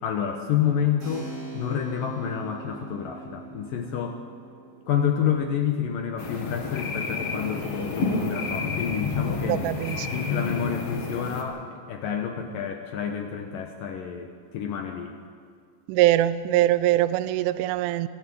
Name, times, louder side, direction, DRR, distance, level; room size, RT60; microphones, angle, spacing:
voice 1, 0.0-4.2 4.9-9.6 10.1-15.1, left 8 dB, 75° left, 2.0 m, -29 dB
Keyboard (musical), 1.0-9.4, right 3 dB, 30° right, 6.2 m, -45 dB
sound 1, 6.2-11.4, left 4 dB, 50° left, 1.9 m, -30 dB
voice 2, 9.4-10.3 15.9-18.1, right 14 dB, 85° right, 3.1 m, -23 dB
23.5 x 13.0 x 8.5 m
omnidirectional pair, 5.5 m